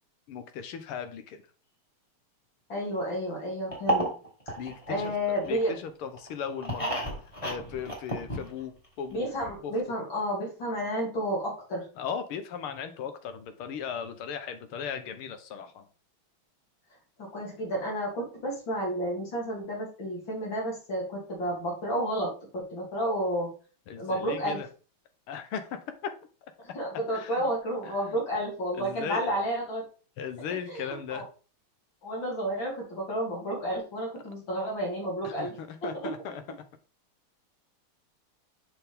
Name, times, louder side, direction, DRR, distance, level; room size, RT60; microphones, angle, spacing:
voice 1, 0.3-1.4 4.6-5.1 5.4-7.0 7.4-8.7 9.0-9.3 9.6-9.7 12.0-15.9 23.9-24.7 25.3-26.1 27.1-27.4 27.8-27.9 28.8-29.4 30.2-31.2 35.2-36.4, left 7 dB, 80° left, 9 dB, 1.9 m, -37 dB
voice 2, 2.7-4.1 4.5-4.6 4.9-5.7 9.1-11.9 17.2-23.5 24.0-24.6 26.7-29.8 30.7-31.2 32.0-35.6 35.8-35.9, equal, 60° left, -3 dB, 3.7 m, -31 dB
sound 1, 3.7-5.7 6.2-8.8 9.1-9.2 9.4-9.5, right 1 dB, 15° left, 2.1 m, -32 dB
7.0 x 5.9 x 3.6 m, 0.36 s
omnidirectional pair, 2.4 m